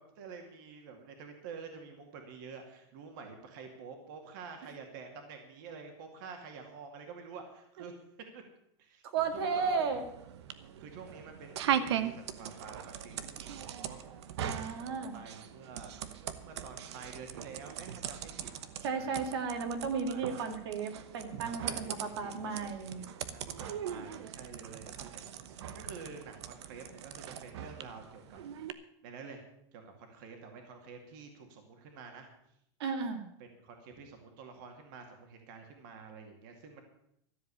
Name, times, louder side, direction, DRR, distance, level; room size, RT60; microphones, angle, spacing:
voice 1, 0.0-7.9 8.3-8.4 8.8-9.0 9.3-9.9 10.8-14.0 14.4-18.5 18.9-19.1 20.0-20.5 21.6-28.4 29.0-29.4 29.7-32.3 33.4-36.8, right 5 dB, 45° right, 4 dB, 2.3 m, -49 dB
voice 2, 9.0-10.0 14.4-15.2 18.8-23.0 32.8-33.3, right 5 dB, 65° right, 6 dB, 2.2 m, -34 dB
sound 1, 9.2-28.7, right 9 dB, 85° right, 1.1 m, -40 dB
13.5 x 7.7 x 8.4 m, 0.73 s
supercardioid pair, 180°, 14 cm